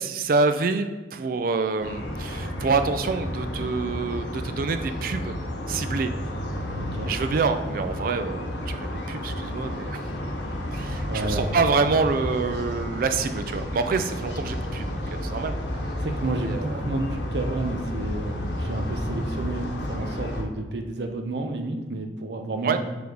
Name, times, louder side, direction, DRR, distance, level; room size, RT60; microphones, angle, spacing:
voice 1, 0.0-5.4 5.7-6.1 7.1-10.0 10.7-15.5 16.5-16.7 22.6-22.8, right 4 dB, 50° right, 8 dB, 0.3 m, -26 dB
sound 1, 1.8-20.4, left 1 dB, 80° left, 1.2 m, -31 dB
voice 2, 6.7-7.1 11.0-11.6 16.0-22.8, right 2 dB, 70° right, 4 dB, 0.7 m, -31 dB
4.9 x 4.7 x 5.1 m, 1.3 s
head